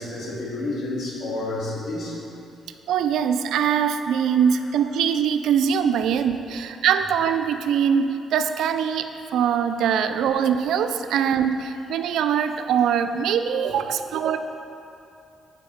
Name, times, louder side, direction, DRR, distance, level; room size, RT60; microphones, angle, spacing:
voice 1, 0.0-2.2, left 2 dB, 65° left, -4 dB, 2.0 m, -30 dB
voice 2, 2.9-14.4, right 8 dB, 80° right, 9 dB, 0.4 m, -22 dB
8.2 x 5.2 x 5.6 m, 2.7 s
cardioid pair, 90°, 0 cm